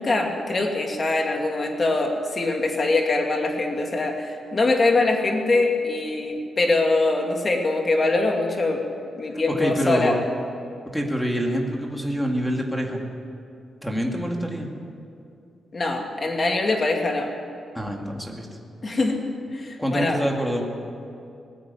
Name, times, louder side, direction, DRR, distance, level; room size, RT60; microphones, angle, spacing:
voice 1, 0.0-8.8 9.2-10.2 15.7-17.3 18.8-19.2 19.5-20.2, left 2 dB, 30° left, 2 dB, 2.6 m, -23 dB
voice 2, 9.5-10.2 10.9-13.0 13.8-14.7 17.7-18.5 19.8-20.7, equal, 5° left, 1 dB, 2.4 m, -26 dB
19.5 x 15.5 x 9.8 m, 2.5 s
wide cardioid pair, 150°, 0 cm